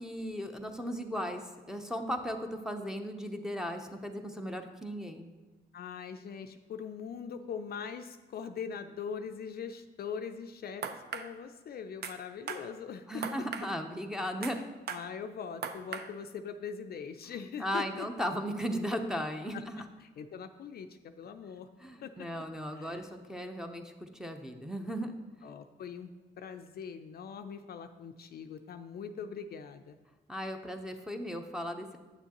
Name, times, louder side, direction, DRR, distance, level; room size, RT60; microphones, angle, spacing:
voice 1, 0.0-1.4 1.7-5.3 13.1-14.6 17.6-19.8 21.8-25.2 30.3-32.0, equal, 5° right, 3 dB, 0.7 m, -36 dB
voice 2, 5.7-13.2 14.5-14.6 14.9-18.1 19.5-19.6 20.0-21.7 22.0-22.1 22.7-23.0 25.4-26.1 26.4-30.0, left 6 dB, 50° left, 8 dB, 0.4 m, -42 dB
sound 1, 10.8-11.3 12.0-12.2 12.5-12.6 13.2-13.7 14.4-14.6 14.9-15.0 15.6-16.1, right 6 dB, 55° right, 0.6 m, -37 dB
8.4 x 6.9 x 2.9 m, 1.2 s
cardioid pair, 90°, 20 cm